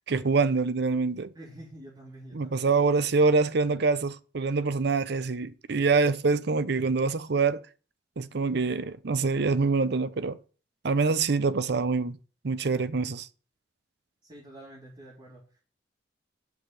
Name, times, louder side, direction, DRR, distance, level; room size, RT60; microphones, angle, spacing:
voice 1, 0.1-1.3 2.3-7.6 8.2-10.4 10.8-12.2 12.4-13.3, right 4 dB, 60° right, 0.6 m, -25 dB
voice 2, 1.3-2.6 14.2-15.6, right 1 dB, 25° right, 3.4 m, -47 dB
9.2 x 5.8 x 6.8 m
head